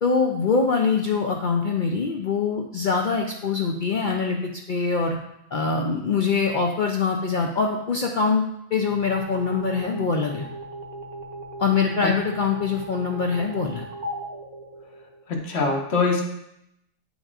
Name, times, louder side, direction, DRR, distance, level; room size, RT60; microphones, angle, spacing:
voice 1, 0.0-4.4 4.7-5.2 5.5-8.4 8.7-10.5 11.6-13.8, left 5 dB, 70° left, 1 dB, 0.4 m, -23 dB
sound 1, 8.9-15.4, right 1 dB, 80° right, 1.3 m, -38 dB
voice 2, 15.3-16.2, left 4 dB, 55° left, 1 dB, 1.1 m, -23 dB
8.6 x 5.2 x 2.4 m, 0.81 s
omnidirectional pair, 1.4 m